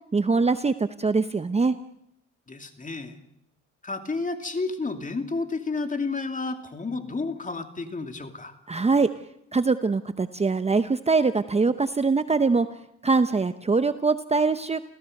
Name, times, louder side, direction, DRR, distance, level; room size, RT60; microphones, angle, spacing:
voice 1, 0.1-0.7 1.0-1.7 8.7-9.1 9.5-12.7 13.0-14.8, right 4 dB, 20° right, 11 dB, 0.8 m, -23 dB
voice 2, 2.5-3.2 3.8-8.5, left 3 dB, 25° left, 6 dB, 2.6 m, -31 dB
29.0 x 16.0 x 6.6 m, 0.75 s
cardioid pair, 90°, 30 cm